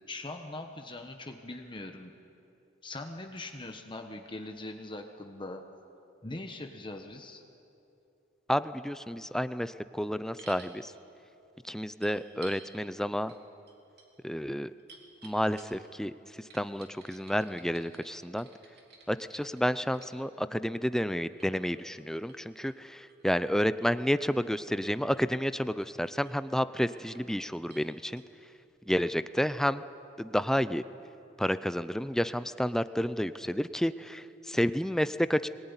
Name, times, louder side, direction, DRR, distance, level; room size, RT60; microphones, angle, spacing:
voice 1, 0.1-2.1 2.8-5.6 6.2-7.4, left 2 dB, 25° left, 5 dB, 1.2 m, -41 dB
voice 2, 8.5-10.9 11.6-13.3 14.2-14.7 15.2-16.1 16.5-18.5 19.1-28.2 28.9-29.8 30.2-30.8 31.4-35.5, equal, 5° left, 13 dB, 0.5 m, -30 dB
sound 1, 10.4-10.7 12.0-12.7 13.3-13.4 13.7-15.9 16.5-20.1 21.1-24.5 24.8-25.4 25.8-26.3 26.7-27.3 27.7-27.9 28.2-28.3, right 4 dB, 55° right, 3.3 m, -55 dB
23.0 x 19.5 x 9.8 m, 2.8 s
head